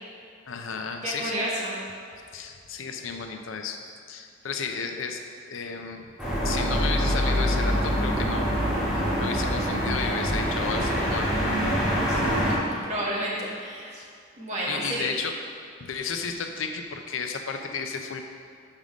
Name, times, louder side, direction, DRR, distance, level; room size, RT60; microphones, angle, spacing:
voice 1, 0.5-1.4 2.3-3.8 4.1-5.2 5.5-6.1 6.4-8.6 9.0-11.3 14.0-14.1 14.7-15.4 15.8-18.3, left 5 dB, 75° left, 5 dB, 0.6 m, -33 dB
voice 2, 1.0-1.8 9.9-10.1 12.0-12.2 12.7-14.0 14.4-15.1, right 1 dB, 35° right, -5 dB, 1.5 m, -31 dB
sound 1, 6.2-12.5, equal, 5° right, 1.8 m, -25 dB
5.5 x 5.1 x 6.1 m, 2.4 s
head